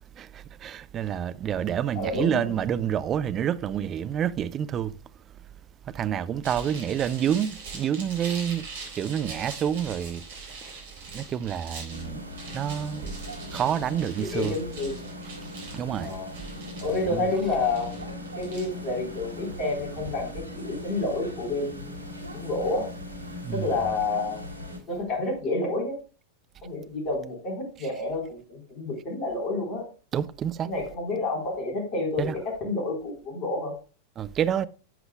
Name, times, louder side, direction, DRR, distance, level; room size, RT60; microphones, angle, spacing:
voice 1, 0.2-4.9 5.9-8.7 9.0-10.2 11.1-12.2 12.5-13.0 13.5-14.5 15.7-16.1 17.0-17.3 23.4-23.7 30.1-30.7 32.2-32.3 34.2-34.7, right 9 dB, 30° right, 0.5 m, -28 dB
voice 2, 2.0-2.5 13.6-15.1 16.0-16.3 16.8-18.0 18.4-22.0 22.3-22.9 23.5-24.4 24.9-26.0 26.6-29.8 30.6-33.8, left 2 dB, 35° left, 3.9 m, -29 dB
sound 1, 6.4-20.4, right 4 dB, 55° right, 3.8 m, -42 dB
sound 2, 11.9-24.8, left 1 dB, 85° left, 2.4 m, -39 dB
10.5 x 7.8 x 2.2 m
figure-of-eight pair, 90°, 0 cm